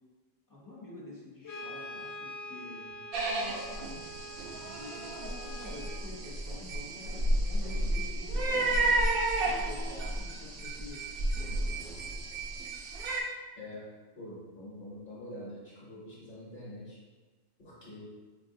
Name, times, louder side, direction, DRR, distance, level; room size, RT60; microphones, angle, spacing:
voice 1, 0.5-2.9 3.4-4.2 4.7-8.9 9.4-11.1, left 2 dB, 25° left, -5 dB, 0.5 m, -48 dB
Brass instrument, 1.4-6.0, equal, 85° left, 1.1 m, -44 dB
sound 1, 3.1-13.2, right 2 dB, 65° right, 0.7 m, -32 dB
voice 2, 14.1-17.0 17.6-18.0, left 1 dB, 55° left, -8 dB, 1.1 m, -45 dB
4.0 x 2.6 x 2.6 m, 1.3 s
omnidirectional pair, 1.1 m